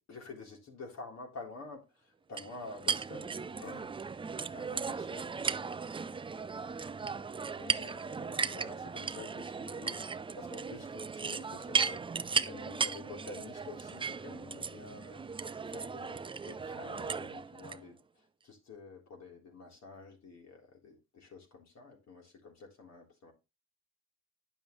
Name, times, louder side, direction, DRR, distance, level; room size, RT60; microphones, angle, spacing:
voice 1, 0.1-3.3 3.6-3.9 4.5-5.3 7.6-23.3, left 3 dB, 60° left, 3.7 m, -49 dB
sound 1, 2.4-17.8, right 5 dB, 15° right, 0.4 m, -36 dB
9.6 x 6.7 x 3.1 m
cardioid pair, 90°, 30 cm